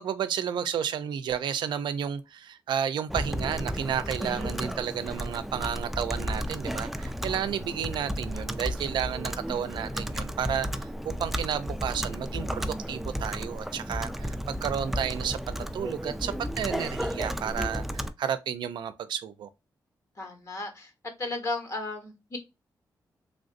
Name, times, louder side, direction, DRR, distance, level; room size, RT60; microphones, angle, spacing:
voice 1, 0.0-19.5, right 8 dB, 85° right, 0.4 m, -32 dB
Computer keyboard, 3.1-18.1, equal, 5° right, 0.3 m, -33 dB
voice 2, 20.2-20.9 21.2-22.4, left 2 dB, 45° left, 1.2 m, -34 dB
3.3 x 2.5 x 2.4 m
cardioid pair, 85°, 8 cm